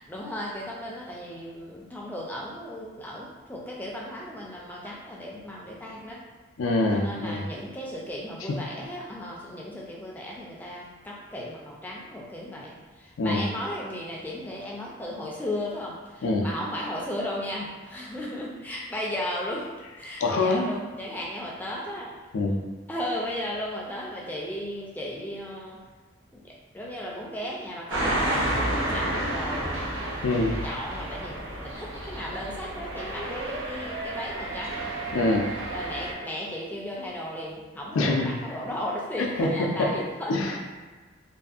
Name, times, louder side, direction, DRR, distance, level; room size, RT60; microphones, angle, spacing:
voice 1, 0.1-6.2 6.9-22.1 22.9-25.8 26.3-29.8 30.3-34.8 35.7-40.4, left 1 dB, 10° left, -4 dB, 0.3 m, -35 dB
voice 2, 6.6-7.4 8.5-8.6 13.2-13.4 16.2-16.5 20.2-20.7 22.3-22.6 30.2-30.6 35.1-35.5 37.9-38.3 39.4-39.9 40.3-40.6, left 2 dB, 85° left, 1 dB, 0.4 m, -24 dB
sound 1, 27.9-36.1, right 1 dB, 75° right, 0.5 m, -31 dB
2.6 x 2.4 x 2.4 m, 1.3 s
head